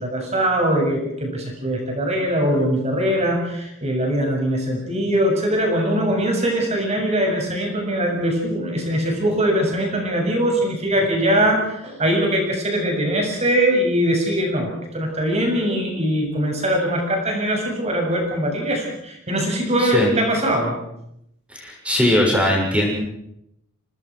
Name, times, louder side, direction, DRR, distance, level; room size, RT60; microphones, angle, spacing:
voice 1, 0.0-20.8, equal, 30° right, 1 dB, 7.1 m, -21 dB
voice 2, 19.8-20.1 21.5-22.9, left 1 dB, 5° right, -1 dB, 6.7 m, -20 dB
27.5 x 19.0 x 6.4 m, 0.77 s
head